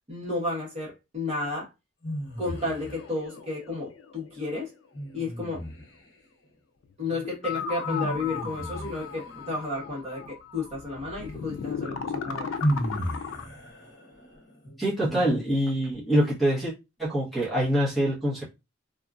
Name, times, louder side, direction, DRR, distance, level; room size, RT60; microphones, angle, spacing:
voice 1, 0.1-1.7 2.4-4.7 5.1-5.6 7.0-12.5, left 2 dB, 35° right, 1.3 m, -32 dB
sound 1, 2.0-3.2 4.9-6.1 7.8-9.8 11.7-11.8 12.6-15.9, equal, 60° left, 1.0 m, -34 dB
sound 2, 2.6-5.2 5.6-5.7 6.8-6.9 7.1-13.5, left 6 dB, 90° left, 0.4 m, -37 dB
voice 2, 14.8-16.7 17.0-18.4, equal, ahead, 1.0 m, -25 dB
2.8 x 2.4 x 2.4 m
head